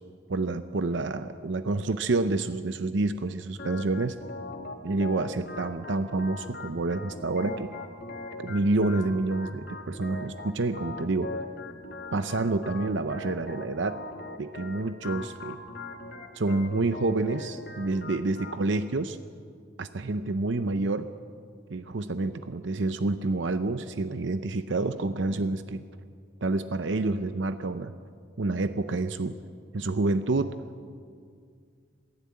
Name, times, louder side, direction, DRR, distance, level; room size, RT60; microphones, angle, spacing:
voice 1, 0.3-4.2 4.8-7.7 8.4-11.3 12.1-14.0 14.4-15.6 16.3-19.2 19.8-21.1 21.7-25.8 26.4-27.9 28.4-29.4 29.7-30.6, right 2 dB, 65° right, 11 dB, 0.7 m, -28 dB
Organ, 3.6-18.6, left 2 dB, 55° left, 1.9 m, -41 dB
22.0 x 15.5 x 8.6 m, 2.2 s
head